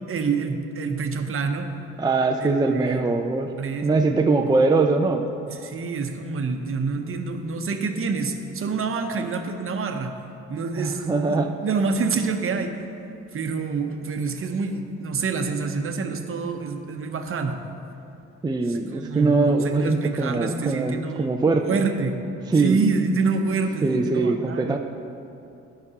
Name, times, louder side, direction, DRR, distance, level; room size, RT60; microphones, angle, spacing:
voice 1, 0.1-1.7 2.4-3.1 3.6-3.9 4.4-4.5 5.5-10.2 10.5-11.0 11.3-12.8 13.3-17.6 18.7-21.3 21.6-22.2 22.6-24.7, right 4 dB, 45° right, 5 dB, 0.9 m, -27 dB
voice 2, 2.0-3.5 3.8-5.3 10.8-11.6 18.4-21.8 22.5-22.8 23.8-24.8, right 3 dB, 15° right, 3 dB, 0.4 m, -22 dB
18.0 x 6.0 x 2.9 m, 2.7 s
cardioid pair, 90°, 30 cm